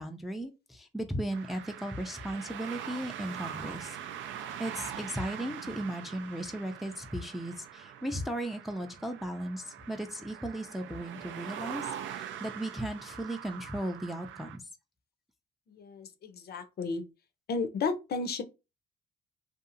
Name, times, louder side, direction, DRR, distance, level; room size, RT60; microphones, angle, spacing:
voice 1, 0.0-4.0 4.6-14.6, right 1 dB, ahead, 0.4 m, -36 dB
sound 1, 1.3-14.6, right 9 dB, 75° right, 0.4 m, -43 dB
voice 2, 15.7-17.0 17.5-18.4, left 4 dB, 55° left, 0.5 m, -33 dB
2.7 x 2.3 x 2.5 m
cardioid pair, 90°, 20 cm